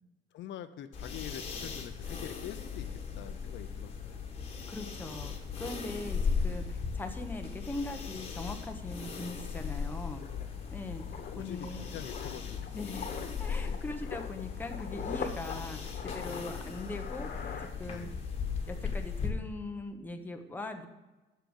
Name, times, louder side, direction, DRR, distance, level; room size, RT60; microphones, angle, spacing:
voice 1, 0.3-2.9 3.2-4.2 11.4-12.9 13.6-13.8 16.2-16.6 17.8-18.2, left 11 dB, 75° left, 10 dB, 0.7 m, -45 dB
sound 1, 0.9-19.3, left 5 dB, 30° left, 1.3 m, -37 dB
voice 2, 4.7-11.0 11.4-11.8 12.7-13.1 13.4-18.1 18.7-20.9, left 2 dB, 10° left, 5 dB, 0.8 m, -41 dB
sound 2, 8.9-9.0 9.3-18.3 18.6-18.8, left 6 dB, 50° left, 1.3 m, -44 dB
8.2 x 6.8 x 7.8 m, 1.2 s
cardioid pair, 170°, 19 cm